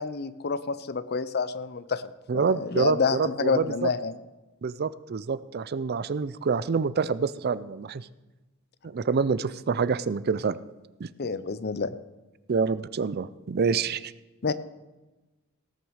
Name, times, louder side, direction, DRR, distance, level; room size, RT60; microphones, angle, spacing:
voice 1, 0.0-2.0 2.3-4.2 11.2-11.9 14.4-14.5, left 5 dB, 50° left, 15 dB, 0.6 m, -28 dB
voice 2, 2.3-3.9 4.6-8.1 8.8-10.6 11.0-11.1 12.5-14.1, right 5 dB, 50° right, 17 dB, 0.4 m, -27 dB
18.0 x 6.3 x 6.4 m, 1.1 s
head